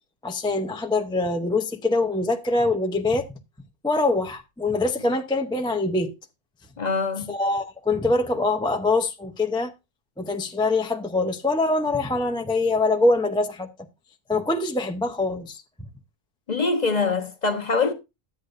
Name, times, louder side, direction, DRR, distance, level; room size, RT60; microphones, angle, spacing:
voice 1, 0.2-3.2 3.8-6.1 7.3-9.7 10.2-13.7 14.3-15.6, left 2 dB, 5° left, 0.4 m, -24 dB
voice 2, 6.8-7.3 16.5-17.9, left 4 dB, 35° left, 1.0 m, -24 dB
12.0 x 8.3 x 2.5 m
omnidirectional pair, 1.5 m